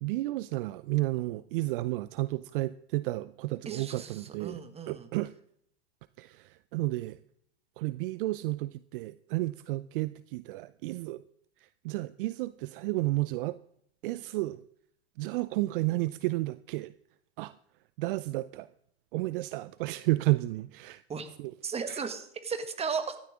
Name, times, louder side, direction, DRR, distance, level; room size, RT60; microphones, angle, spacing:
voice 1, 0.0-4.6 4.9-5.3 6.2-7.2 7.8-11.2 11.6-13.6 14.0-14.6 15.2-16.9 17.4-17.5 18.0-18.7 19.1-21.0 21.4-21.5 21.9-22.0, right 19 dB, 55° right, 17 dB, 0.5 m, -32 dB
voice 2, 3.7-5.1 21.1-21.3 21.6-23.2, right 5 dB, 20° right, 9 dB, 1.7 m, -35 dB
16.0 x 13.0 x 3.6 m, 0.69 s
hypercardioid pair, 110°, 33 cm